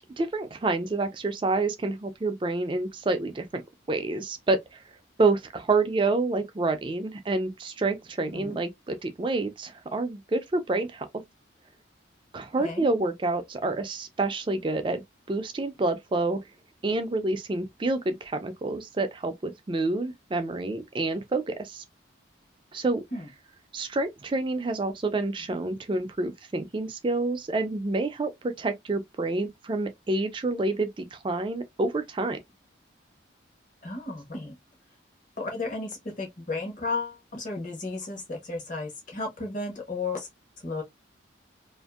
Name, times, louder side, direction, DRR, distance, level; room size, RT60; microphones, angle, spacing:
voice 1, 0.2-3.6 3.9-4.8 5.2-11.1 12.3-15.0 15.3-16.4 16.8-21.8 22.7-23.0 23.7-32.4, right 2 dB, 25° right, 0.3 m, -28 dB
voice 2, 33.8-34.5 35.4-40.3 40.6-40.8, left 3 dB, 40° left, 0.9 m, -33 dB
2.6 x 2.5 x 2.3 m
head